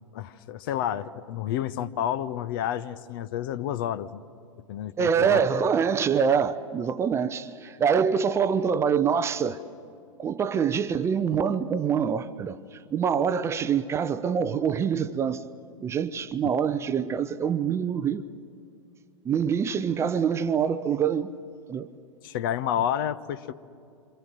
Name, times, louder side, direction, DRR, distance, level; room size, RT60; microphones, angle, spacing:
voice 1, 0.1-4.2 4.7-5.4 22.2-23.5, left 10 dB, 45° left, 1.0 m, -30 dB
voice 2, 5.0-9.6 10.2-15.4 15.8-18.2 19.2-21.3 21.7-21.9, right 7 dB, 15° right, 0.7 m, -25 dB
27.5 x 26.0 x 7.7 m
figure-of-eight pair, 100°, 17 cm